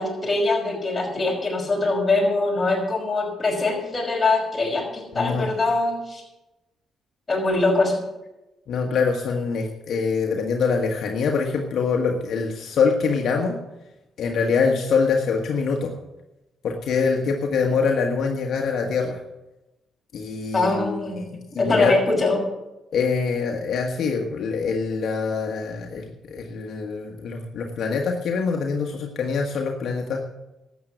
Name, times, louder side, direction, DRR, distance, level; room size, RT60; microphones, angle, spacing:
voice 1, 0.0-6.2 7.3-7.9 20.5-21.3 21.6-22.4, left 2 dB, 25° left, -1 dB, 5.6 m, -23 dB
voice 2, 5.1-5.5 8.7-13.6 14.2-15.9 16.6-19.2 20.1-21.2 21.5-22.0 22.9-30.2, left 5 dB, 65° left, 2 dB, 1.4 m, -24 dB
12.5 x 8.3 x 7.9 m, 0.98 s
cardioid pair, 90°, 0 cm